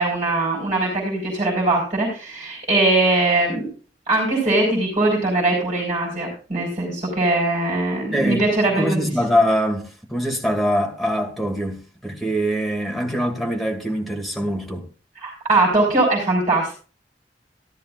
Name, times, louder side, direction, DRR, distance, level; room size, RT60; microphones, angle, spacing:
voice 1, 0.0-3.7 4.1-9.0 15.1-16.7, right 2 dB, 35° right, 4.3 m, -21 dB
voice 2, 8.1-8.5 8.8-14.9, equal, ahead, 1.6 m, -23 dB
13.5 x 12.5 x 2.4 m
head